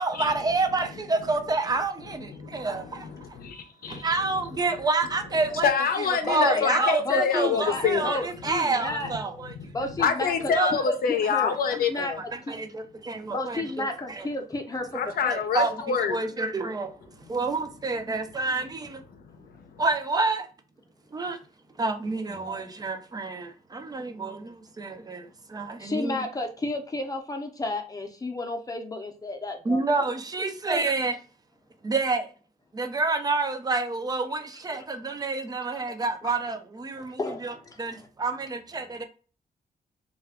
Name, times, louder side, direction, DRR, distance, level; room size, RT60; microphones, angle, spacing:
voice 1, 0.0-3.1 3.9-5.7 6.3-9.5 10.0-10.1 10.5-10.7 12.3-14.3 15.3-16.9 17.3-19.0 19.8-20.5 21.1-21.4 21.8-26.2 29.6-31.2 31.8-32.3 32.7-39.0, right 3 dB, 25° right, 0.5 m, -28 dB
voice 2, 0.7-1.0 2.1-4.5 5.3-8.2 8.4-8.5 9.0-9.1 9.4-12.2 14.9-16.2 19.1-19.8, left 6 dB, 75° left, 0.6 m, -28 dB
voice 3, 6.2-9.1 9.7-10.5 10.9-11.5 11.9-12.1 12.5-12.6 13.3-15.3 25.8-29.8 36.2-36.3 36.9-38.1, left 2 dB, 25° left, 0.6 m, -32 dB
2.4 x 2.1 x 3.4 m
cardioid pair, 90°, 16 cm